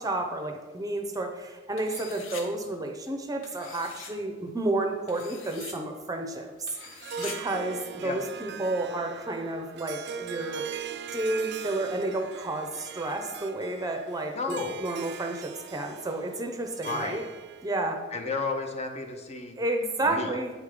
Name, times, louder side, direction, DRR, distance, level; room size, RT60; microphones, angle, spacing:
voice 1, 0.0-6.5 7.2-10.7 11.1-17.2 17.6-18.0 19.6-20.5, right 2 dB, 20° right, 4 dB, 0.6 m, -31 dB
sound 1, 1.8-2.4 3.4-4.1 5.1-5.7 6.7-7.4, left 5 dB, 80° left, 1.1 m, -43 dB
Harp, 6.9-17.8, right 7 dB, 60° right, 0.4 m, -41 dB
voice 2, 14.3-14.8 16.8-17.2 18.1-19.6 20.0-20.3, left 3 dB, 35° left, 5 dB, 0.7 m, -32 dB
8.7 x 3.6 x 4.9 m, 1.3 s
head